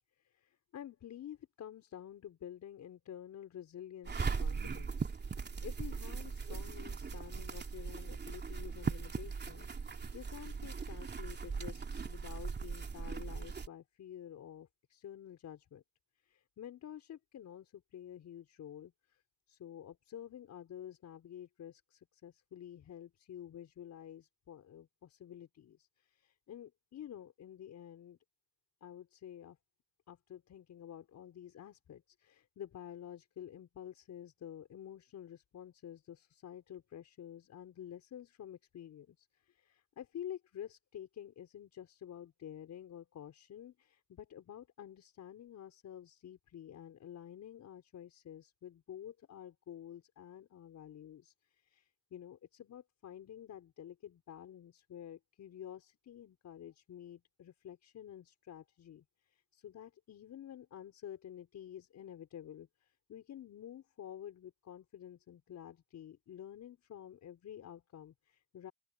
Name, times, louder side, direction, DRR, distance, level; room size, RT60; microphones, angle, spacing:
voice 1, 0.2-15.8 16.2-19.2 19.5-28.2 28.8-29.6 30.1-68.7, left 10 dB, 65° left, 5.5 m, -50 dB
sound 1, 4.0-13.7, right 5 dB, 35° right, 3.1 m, -39 dB
open air
cardioid pair, 90°, 30 cm